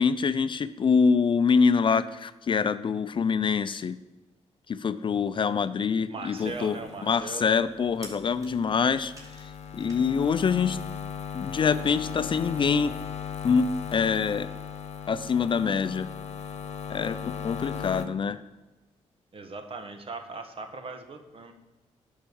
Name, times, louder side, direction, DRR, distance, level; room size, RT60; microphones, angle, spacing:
voice 1, 0.0-4.0 4.7-9.1 9.4-10.8 11.3-12.9 13.4-14.5 15.1-16.1 16.9-18.4, left 5 dB, 45° left, 13 dB, 0.5 m, -25 dB
sound 1, 5.0-10.4, right 1 dB, 30° right, 2.8 m, -53 dB
voice 2, 6.1-7.5 19.3-21.5, right 3 dB, 50° right, 7 dB, 1.4 m, -39 dB
sound 2, 6.4-18.1, left 7 dB, 65° left, 1.0 m, -37 dB
10.5 x 5.7 x 7.0 m, 1.1 s
cardioid pair, 85°, 12 cm